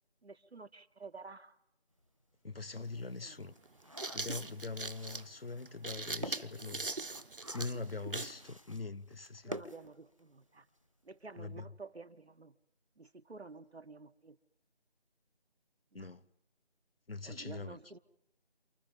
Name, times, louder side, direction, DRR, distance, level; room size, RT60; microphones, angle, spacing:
voice 1, 0.2-1.6 3.2-3.4 8.1-8.2 9.4-10.7 11.0-12.5 13.0-14.4 15.9-16.1 17.2-18.0, right 3 dB, 85° right, 1.5 m, -51 dB
sound 1, 2.0-2.1 2.5-10.6 10.9-11.0 11.3-11.5, equal, 30° right, 0.9 m, -50 dB
voice 2, 2.4-3.6 4.1-6.9 7.5-9.6 11.4-11.7 15.9-16.3 17.1-17.8, left 3 dB, 65° left, 1.0 m, -42 dB
sound 2, 2.6-2.7 3.7-8.4, right 3 dB, 60° right, 1.0 m, -41 dB
28.5 x 28.5 x 5.4 m
figure-of-eight pair, 180°, 31 cm